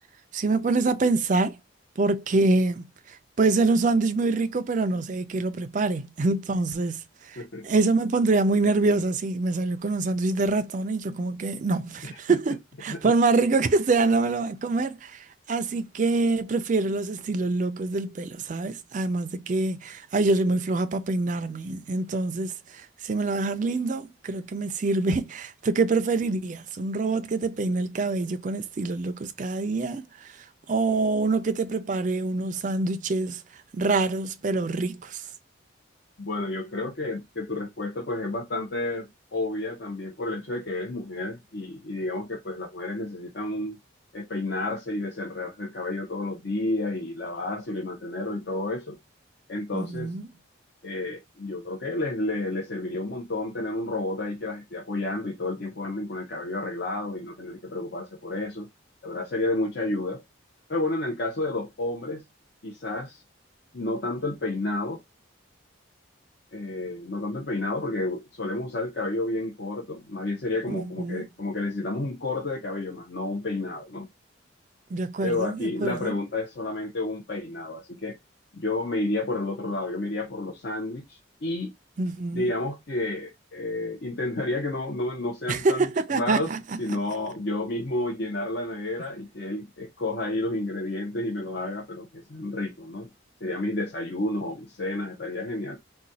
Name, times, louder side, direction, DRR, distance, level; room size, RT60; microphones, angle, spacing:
voice 1, 0.3-1.6 2.0-33.4 33.7-35.3 49.7-50.3 70.7-71.3 74.9-76.1 82.0-82.5 85.5-86.8, right 3 dB, 40° right, 0.4 m, -25 dB
voice 2, 12.0-12.4 12.9-13.1 36.2-43.8 44.1-49.0 49.5-50.1 50.8-58.7 59.0-60.2 60.7-62.2 62.6-63.2 63.7-65.0 66.5-74.1 75.2-78.2 78.5-81.7 82.3-86.5 86.8-93.1 93.4-95.8, left 2 dB, 55° left, 0.7 m, -31 dB
4.0 x 2.2 x 2.6 m
head